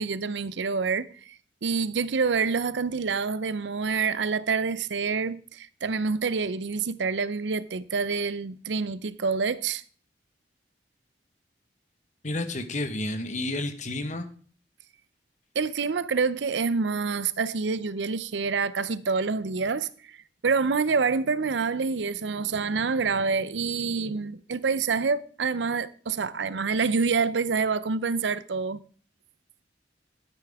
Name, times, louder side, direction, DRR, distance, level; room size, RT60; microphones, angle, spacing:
voice 1, 0.0-1.3 1.6-9.8 15.5-19.9 20.4-28.8, right 5 dB, 85° right, 0.6 m, -27 dB
voice 2, 12.2-14.3, left 2 dB, 45° left, 1.2 m, -30 dB
12.0 x 9.3 x 3.6 m
head